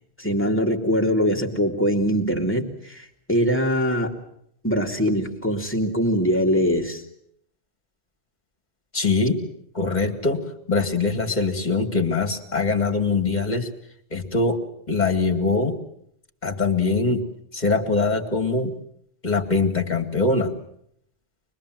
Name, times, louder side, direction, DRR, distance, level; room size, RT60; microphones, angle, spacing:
voice 1, 0.2-4.2 4.6-7.0, equal, 10° left, 1 dB, 2.6 m, -22 dB
voice 2, 8.9-9.4 9.7-13.7 14.1-14.6 14.9-15.8 16.4-17.2 17.5-18.7 19.2-20.6, left 3 dB, 40° left, 8 dB, 2.4 m, -23 dB
25.0 x 21.0 x 7.7 m, 0.71 s
omnidirectional pair, 1.1 m